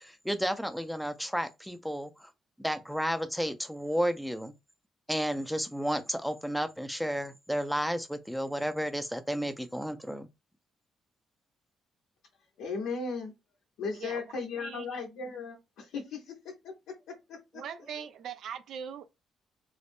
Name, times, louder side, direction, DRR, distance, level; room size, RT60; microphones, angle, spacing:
voice 1, 0.0-2.3 2.6-4.5 5.1-10.3, equal, ahead, 0.5 m, -32 dB
voice 2, 12.6-13.3 13.8-16.7 17.9-18.0, left 4 dB, 85° left, 0.9 m, -36 dB
voice 3, 13.9-14.9 17.5-19.1, right 8 dB, 70° right, 0.4 m, -41 dB
3.9 x 2.0 x 3.5 m
cardioid pair, 90°, 0 cm